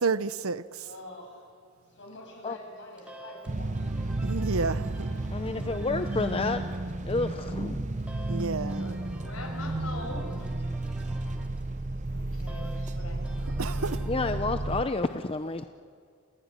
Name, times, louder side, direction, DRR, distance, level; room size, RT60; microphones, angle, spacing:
voice 1, 0.0-0.8 4.2-5.1 8.3-9.0 13.6-14.0, right 4 dB, 80° right, 0.8 m, -30 dB
voice 2, 0.8-1.5 1.8-4.3 8.5-9.3 11.9-12.5, left 1 dB, 60° left, 6.9 m, -48 dB
sound 1, 3.0-14.5, right 1 dB, 5° right, 2.4 m, -50 dB
sound 2, 3.5-14.8, right 2 dB, 35° right, 0.8 m, -32 dB
voice 3, 5.3-6.6 7.0-7.9 14.1-15.6, left 3 dB, 25° left, 0.6 m, -30 dB
voice 4, 8.4-10.5 12.1-13.9, left 2 dB, 80° left, 5.7 m, -44 dB
28.5 x 16.5 x 9.8 m
head